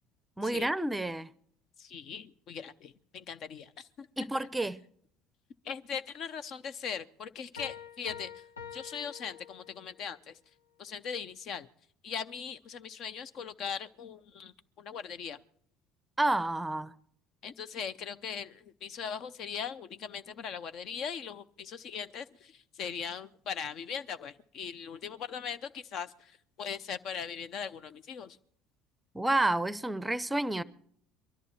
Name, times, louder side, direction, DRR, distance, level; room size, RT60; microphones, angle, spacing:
voice 1, 0.4-1.3 4.2-4.8 16.2-16.9 29.1-30.6, right 2 dB, 10° right, 0.6 m, -29 dB
voice 2, 1.8-3.7 4.0-4.3 5.7-8.3 8.7-10.3 10.8-11.7 12.0-14.5 14.8-15.4 17.4-22.3 22.8-26.1 26.6-28.4, left 7 dB, 50° left, 0.7 m, -39 dB
Piano, 7.6-10.1, left 7 dB, 85° left, 0.9 m, -46 dB
23.0 x 13.5 x 4.4 m
figure-of-eight pair, 60°, 0 cm